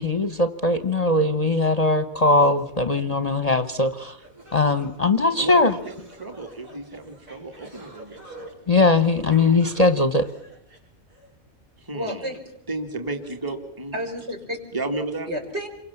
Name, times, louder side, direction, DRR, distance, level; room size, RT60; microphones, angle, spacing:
voice 1, 0.0-4.2 4.5-5.7 8.7-10.3, left 2 dB, 30° left, 10 dB, 1.1 m, -20 dB
voice 2, 2.3-2.6 5.4-8.5 11.8-12.4 12.7-13.9 14.7-15.3, right 2 dB, 15° right, 4 dB, 2.3 m, -33 dB
sound 1, 4.2-11.3, right 2 dB, 80° right, 8.1 m, -47 dB
voice 3, 11.9-12.6 13.9-14.6 15.3-15.7, equal, 50° right, 2 dB, 5.8 m, -31 dB
28.5 x 24.0 x 7.2 m, 0.73 s
omnidirectional pair, 1.4 m